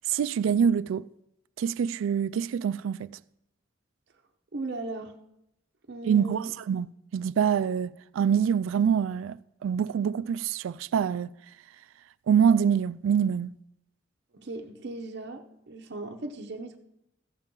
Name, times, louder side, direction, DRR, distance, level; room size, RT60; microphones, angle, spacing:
voice 1, 0.1-1.1 1.6-3.1 6.0-6.9 7.1-11.3 12.3-13.5, right 7 dB, 75° right, 0.3 m, -25 dB
voice 2, 4.5-5.2 5.9-6.5 14.3-16.8, right 2 dB, 55° right, 0.7 m, -37 dB
14.5 x 7.2 x 3.8 m
head